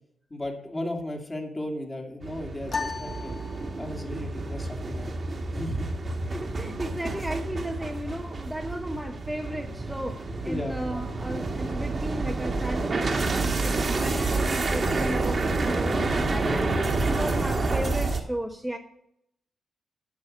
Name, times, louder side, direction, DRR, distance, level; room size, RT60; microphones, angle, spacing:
voice 1, 0.3-3.4 3.8-5.1 5.5-6.2 10.3-10.8 16.4-16.7, left 1 dB, 25° left, 2 dB, 2.4 m, -35 dB
sound 1, 2.2-18.2, right 3 dB, 40° right, 1.5 m, -29 dB
sound 2, 2.7-4.2, left 4 dB, 45° left, 1.0 m, -35 dB
voice 2, 6.3-16.7 17.0-18.8, right 1 dB, 5° right, 3 dB, 1.0 m, -34 dB
9.6 x 6.1 x 8.3 m, 0.76 s
cardioid pair, 80°, 0 cm